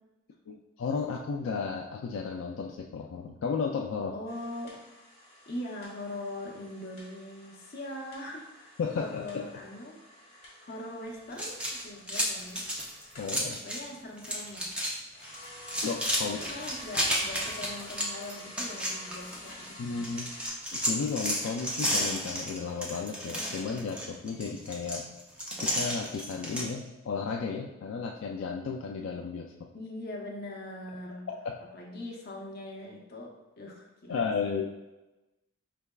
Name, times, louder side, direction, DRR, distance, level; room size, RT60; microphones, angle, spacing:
voice 1, 0.5-4.1 8.8-9.4 13.2-13.6 15.8-16.4 19.8-20.3 20.7-25.0 25.6-29.7 31.4-31.5 34.1-34.7, left 5 dB, 75° left, 0 dB, 0.3 m, -33 dB
voice 2, 4.1-4.8 5.5-12.6 13.6-14.7 16.3-20.0 29.7-31.3 31.7-34.6, left 1 dB, 50° left, -2 dB, 0.8 m, -41 dB
sound 1, 4.3-13.4 14.9-20.5, left 1 dB, 30° left, 1.3 m, -49 dB
sound 2, 11.3-13.9 14.2-14.9 15.2-19.7 20.0-26.7, equal, 5° right, 0.5 m, -32 dB
4.5 x 3.4 x 2.2 m, 1.1 s
head